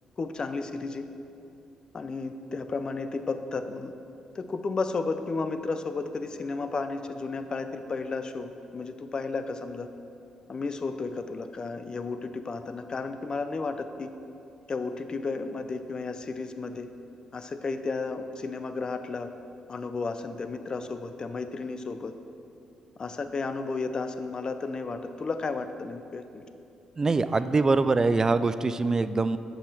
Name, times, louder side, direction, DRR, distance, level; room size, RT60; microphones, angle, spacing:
voice 1, 0.2-1.1 1.9-3.9 4.3-9.9 10.5-14.1 14.7-16.9 17.3-19.3 19.7-22.1 23.0-26.4 27.4-27.5, left 3 dB, 40° left, 9 dB, 0.5 m, -33 dB
voice 2, 27.0-29.4, right 3 dB, 30° right, 12 dB, 0.3 m, -23 dB
7.0 x 5.5 x 6.0 m, 2.6 s
cardioid pair, 80°, 2 cm